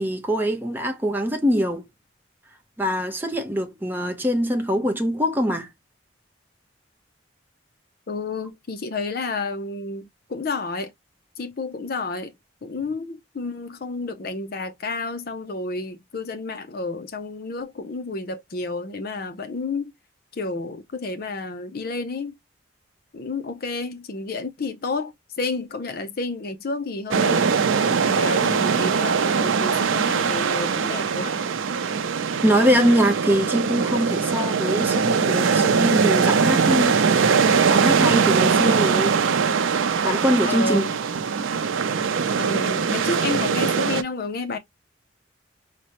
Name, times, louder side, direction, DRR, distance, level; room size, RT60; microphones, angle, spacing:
voice 1, 0.0-1.9 2.8-5.7 32.4-37.4 37.7-39.2 40.0-40.8, equal, 10° right, 0.7 m, -23 dB
voice 2, 8.1-10.9 11.4-12.3 12.6-19.9 20.3-22.4 23.1-27.5 27.9-31.3 40.4-41.0 42.4-44.6, left 3 dB, 50° left, 0.5 m, -30 dB
sound 1, 27.1-44.0, right 5 dB, 90° right, 0.5 m, -21 dB
4.9 x 2.1 x 2.9 m
head